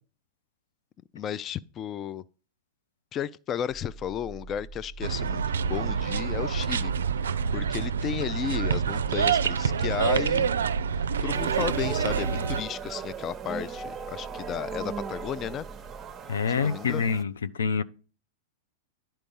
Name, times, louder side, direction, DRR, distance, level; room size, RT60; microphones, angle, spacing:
voice 1, 1.1-2.2 3.1-6.9 7.5-10.5 11.2-15.7 16.6-17.0, left 9 dB, 30° left, 0.3 m, -33 dB
sound 1, 3.7-16.1, right 3 dB, 50° left, 1.6 m, -46 dB
sound 2, 5.0-12.6, right 6 dB, 85° right, 0.4 m, -27 dB
sound 3, 11.3-17.2, right 6 dB, 20° right, 0.8 m, -38 dB
voice 2, 16.3-17.8, left 6 dB, 85° left, 0.5 m, -26 dB
10.5 x 4.5 x 5.4 m
hypercardioid pair, 115°, 0 cm